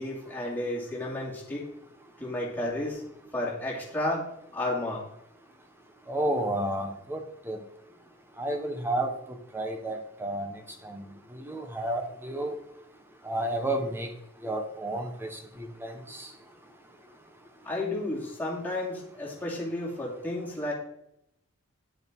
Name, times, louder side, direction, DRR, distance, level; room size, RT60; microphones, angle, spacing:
voice 1, 0.0-1.6 2.2-3.0 3.3-4.3 4.5-5.0 17.6-20.7, left 1 dB, 10° left, -5 dB, 2.7 m, -32 dB
voice 2, 6.1-7.6 8.4-9.1 9.5-10.6 10.8-11.0 11.3-12.6 13.2-14.1 14.4-16.3, right 1 dB, 10° right, 5 dB, 1.2 m, -31 dB
10.5 x 6.6 x 4.6 m, 0.75 s
head